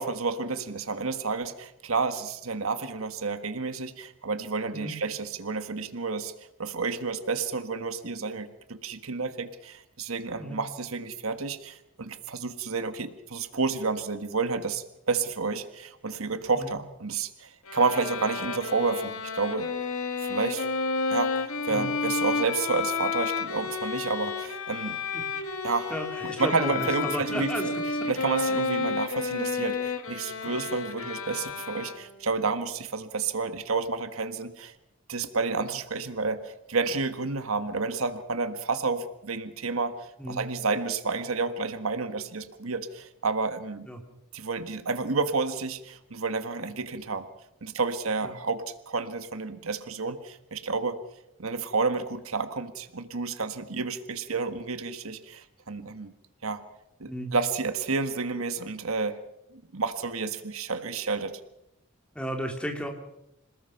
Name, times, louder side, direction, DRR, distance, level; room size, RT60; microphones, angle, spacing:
voice 1, 0.0-6.3 6.6-19.7 20.2-20.7 21.1-25.0 25.6-25.9 26.2-27.7 28.1-34.7 35.1-43.9 44.3-47.3 47.6-51.0 51.4-56.1 56.4-56.6 57.0-59.2 59.7-61.4, right 4 dB, 80° right, 10 dB, 1.5 m, -30 dB
Bowed string instrument, 17.7-32.3, left 4 dB, 90° left, 2.0 m, -31 dB
voice 2, 25.9-27.8 30.4-30.6 40.2-40.4 43.9-44.0 48.2-48.3 57.1-57.3 62.1-62.9, equal, 5° left, 2 dB, 2.9 m, -34 dB
27.0 x 19.5 x 5.8 m, 0.86 s
head